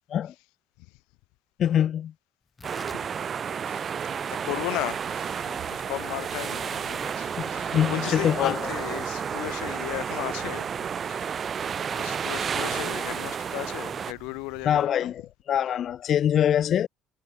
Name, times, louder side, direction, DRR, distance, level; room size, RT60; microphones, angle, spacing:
voice 1, 1.6-2.1 7.4-8.6 14.7-15.2 15.5-16.9, left 10 dB, 60° left, 0.4 m, -24 dB
Tearing, 2.4-9.1, left 4 dB, 25° left, 4.9 m, -56 dB
sound 1, 2.6-14.1, right 7 dB, 45° right, 0.6 m, -31 dB
voice 2, 3.5-3.9 4.3-15.1, left 28 dB, 85° left, 0.7 m, -36 dB
sound 2, 4.8-14.9, right 14 dB, 70° right, 5.0 m, -49 dB
supercardioid pair, 70°, 0 cm